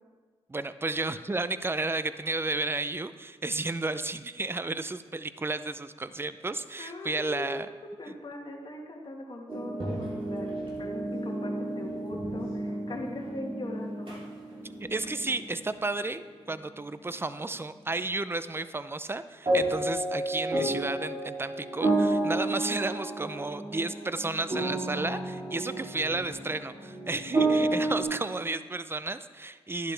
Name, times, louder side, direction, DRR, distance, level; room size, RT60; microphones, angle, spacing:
voice 1, 0.5-7.7 14.8-29.9, right 2 dB, 20° right, 13 dB, 0.5 m, -32 dB
voice 2, 6.8-7.7 8.0-10.5 10.8-14.1, left 2 dB, 45° left, -1 dB, 1.7 m, -40 dB
sound 1, 9.5-15.8 19.5-28.0, right 2 dB, 50° right, 3.3 m, -31 dB
11.0 x 10.5 x 3.4 m, 1.5 s
cardioid pair, 55°, 11 cm